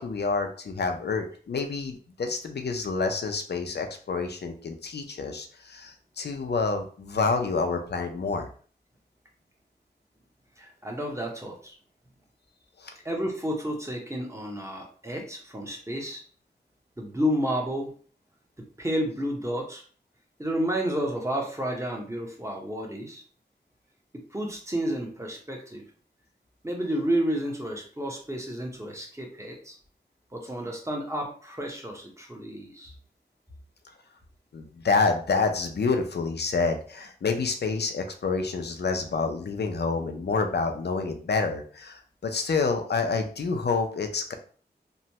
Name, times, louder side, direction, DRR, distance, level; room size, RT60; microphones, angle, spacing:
voice 1, 0.0-8.5 12.8-12.9 34.5-44.3, left 4 dB, 70° left, 5 dB, 0.5 m, -28 dB
voice 2, 10.6-11.8 13.0-16.2 17.0-17.9 18.8-19.8 20.4-23.2 24.3-25.8 26.6-29.8 30.3-32.9, equal, 15° right, 0 dB, 0.9 m, -31 dB
3.1 x 2.2 x 2.8 m, 0.43 s
wide cardioid pair, 55°, 18 cm